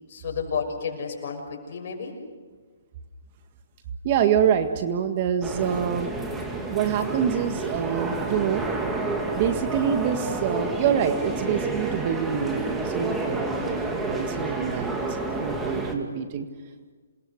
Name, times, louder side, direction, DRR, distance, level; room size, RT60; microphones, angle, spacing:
voice 1, 0.1-2.2, left 6 dB, 50° left, 2 dB, 6.4 m, -31 dB
voice 2, 4.0-6.1 6.7-8.7 9.3-13.6 14.1-15.0 15.3-16.5, right 8 dB, 35° right, 8 dB, 1.8 m, -26 dB
sound 1, 5.4-15.9, right 2 dB, 10° right, 2.3 m, -30 dB
27.5 x 20.0 x 6.6 m, 1.5 s
hypercardioid pair, 155°, 0 cm